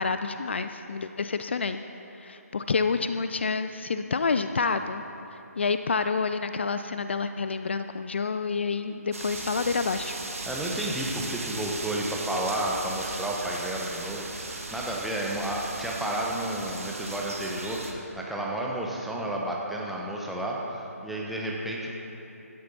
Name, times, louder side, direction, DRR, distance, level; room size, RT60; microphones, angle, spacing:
voice 1, 0.0-1.8 2.2-5.0 5.6-10.2, left 4 dB, 45° left, 9 dB, 0.5 m, -28 dB
sound 1, 9.1-17.9, right 2 dB, 60° right, 1.7 m, -37 dB
voice 2, 10.5-21.9, right 1 dB, ahead, -3 dB, 1.0 m, -31 dB
16.0 x 13.0 x 4.1 m, 2.9 s
figure-of-eight pair, 145°, 8 cm